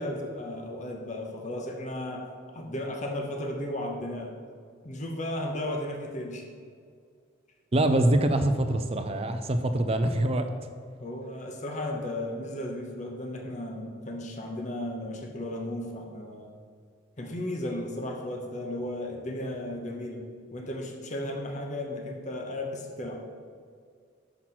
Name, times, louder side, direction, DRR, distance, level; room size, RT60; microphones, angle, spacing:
voice 1, 0.0-4.3 4.8-6.5 11.0-16.5 17.2-23.2, left 1 dB, 35° left, 2 dB, 0.9 m, -35 dB
voice 2, 7.7-10.5, right 1 dB, 30° right, 8 dB, 0.4 m, -24 dB
6.2 x 5.9 x 5.9 m, 2.1 s
head